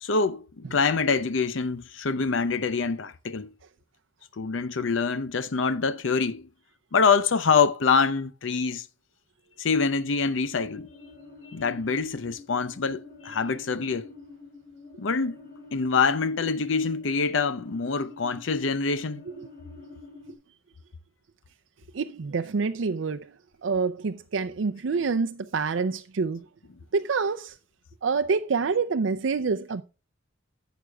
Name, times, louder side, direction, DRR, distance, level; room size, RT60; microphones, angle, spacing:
voice 1, 0.0-3.5 4.3-6.5 6.9-8.9 9.6-10.9 11.4-14.1 15.0-15.4 15.7-19.2, left 5 dB, 70° left, 0.6 m, -25 dB
sound 1, 10.4-20.3, left 3 dB, 50° left, 2.9 m, -47 dB
voice 2, 21.9-23.3 23.6-26.4 26.9-27.6 28.0-29.8, right 4 dB, 70° right, 0.5 m, -27 dB
11.0 x 8.0 x 2.3 m
head